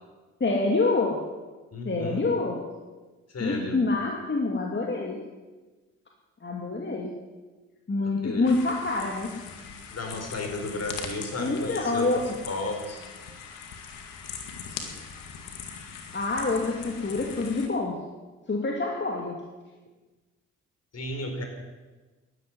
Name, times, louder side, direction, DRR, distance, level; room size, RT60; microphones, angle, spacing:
voice 1, 0.4-1.3 1.8-2.7 3.4-5.2 6.4-7.2 7.9-9.4 11.4-12.3 16.1-18.0 18.5-19.4, left 3 dB, 35° left, 0 dB, 2.6 m, -27 dB
voice 2, 1.7-2.3 3.3-3.8 8.2-8.5 9.9-12.1 12.4-13.0 20.9-21.4, left 2 dB, 50° left, 4 dB, 4.5 m, -33 dB
sound 1, 8.4-17.7, left 6 dB, 85° left, 2.1 m, -41 dB
11.5 x 11.0 x 9.6 m, 1.2 s
supercardioid pair, 55°, 33 cm